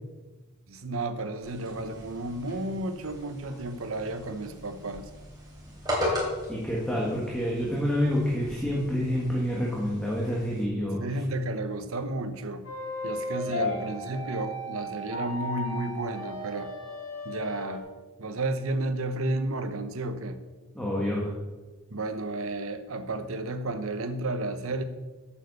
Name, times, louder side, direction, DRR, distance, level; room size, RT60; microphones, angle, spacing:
voice 1, 0.7-5.1 11.0-12.7 13.0-16.7 17.2-17.9 18.2-20.4 21.9-24.8, right 2 dB, 65° right, 10 dB, 0.9 m, -32 dB
sound 1, 1.4-10.6, left 1 dB, 15° right, 3.2 m, -37 dB
voice 2, 6.5-11.2 13.5-13.8 20.7-21.4, equal, 5° left, -4 dB, 1.5 m, -28 dB
sound 2, 12.6-17.8, left 1 dB, 60° left, 3.6 m, -35 dB
8.9 x 7.3 x 6.6 m, 1.2 s
head